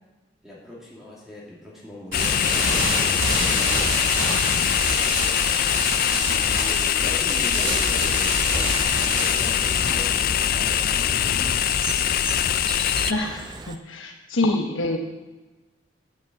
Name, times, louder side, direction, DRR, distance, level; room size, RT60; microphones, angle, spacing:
voice 1, 0.4-3.5 4.4-5.4 6.1-8.5 9.0-11.6, left 1 dB, ahead, -6 dB, 2.5 m, -40 dB
sound 1, 2.1-13.1, left 10 dB, 45° left, 0.3 m, -23 dB
sound 2, 2.1-11.7, right 1 dB, 75° right, 4.5 m, -28 dB
sound 3, 8.6-13.8, right 3 dB, 20° right, 0.5 m, -36 dB
voice 2, 13.1-15.0, left 2 dB, 80° left, 2 dB, 1.1 m, -26 dB
8.8 x 7.2 x 8.3 m, 1.2 s
head